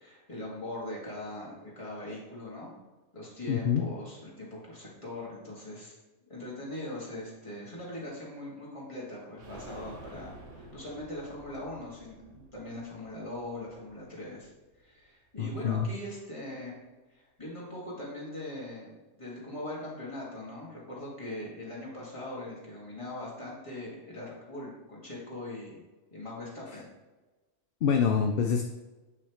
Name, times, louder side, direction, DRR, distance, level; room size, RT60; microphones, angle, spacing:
voice 1, 0.0-2.7 3.1-6.0 6.3-14.5 14.8-16.8 17.1-18.9 19.2-25.8 26.1-26.9, left 1 dB, 25° left, -5 dB, 2.3 m, -41 dB
voice 2, 3.5-3.9 15.4-15.9 27.8-28.6, left 7 dB, 60° left, 4 dB, 0.7 m, -26 dB
sound 1, 9.4-15.0 15.3-15.4 15.7-15.8, right 1 dB, 85° right, 1.5 m, -51 dB
8.0 x 6.0 x 3.1 m, 1.2 s
omnidirectional pair, 1.2 m